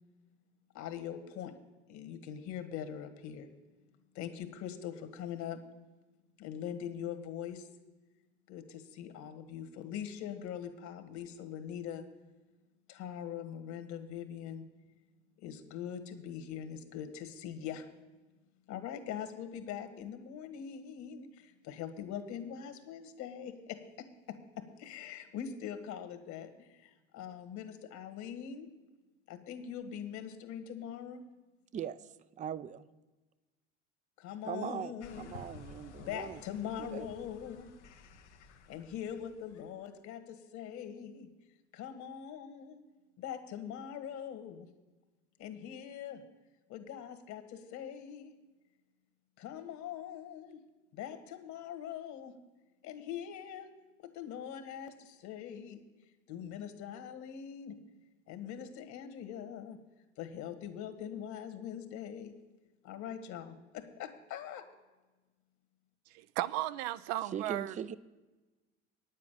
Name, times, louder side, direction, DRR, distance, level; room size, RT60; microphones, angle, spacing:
voice 1, 0.7-1.5 1.9-3.5 4.1-5.6 6.4-7.7 8.5-12.0 12.9-14.6 15.4-17.8 18.7-28.7 29.3-31.2 34.2-35.3 36.0-37.7 38.7-41.3 41.7-42.8 43.2-44.7 45.4-46.2 46.7-48.3 49.4-50.6 50.9-52.4 52.8-53.7 54.0-55.8 56.3-57.8 58.3-59.8 60.2-62.3 62.8-64.6, left 9 dB, 55° left, 7 dB, 1.7 m, -42 dB
voice 2, 32.4-32.9 34.5-36.4 36.9-37.1 67.3-68.0, right 8 dB, 25° right, 16 dB, 0.5 m, -40 dB
sound 1, 35.0-39.7, left 5 dB, 85° left, 1.1 m, -53 dB
voice 3, 66.1-67.8, right 15 dB, 65° right, 16 dB, 0.6 m, -35 dB
9.4 x 7.5 x 9.1 m, 1.2 s
hypercardioid pair, 80°, 33 cm